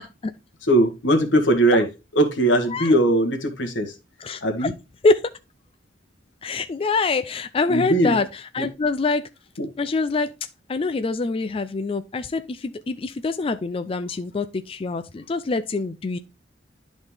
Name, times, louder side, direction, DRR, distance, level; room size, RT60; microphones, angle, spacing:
voice 1, 0.6-1.9 2.2-3.9 4.4-4.7 7.7-8.2 8.6-8.7 9.6-9.7, right 1 dB, 85° left, 1.6 m, -20 dB
voice 2, 4.2-4.7 5.0-5.2 6.4-9.3 9.8-10.3 10.7-16.2, left 3 dB, 30° left, 0.4 m, -25 dB
10.5 x 4.0 x 3.3 m
head